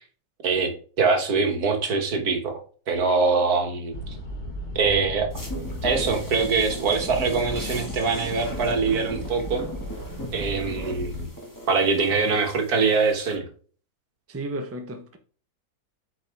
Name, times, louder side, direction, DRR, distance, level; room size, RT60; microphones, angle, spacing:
voice 1, 1.0-4.0 4.8-5.3 5.8-9.6 10.3-11.3 11.7-13.5, right 4 dB, 70° right, 1.9 m, -23 dB
sound 1, 3.9-11.3, left 1 dB, 45° left, 2.6 m, -37 dB
sound 2, 5.3-13.3, equal, 10° left, 1.8 m, -37 dB
voice 2, 14.3-15.2, right 1 dB, 10° right, 0.8 m, -33 dB
8.1 x 4.8 x 3.5 m
omnidirectional pair, 1.7 m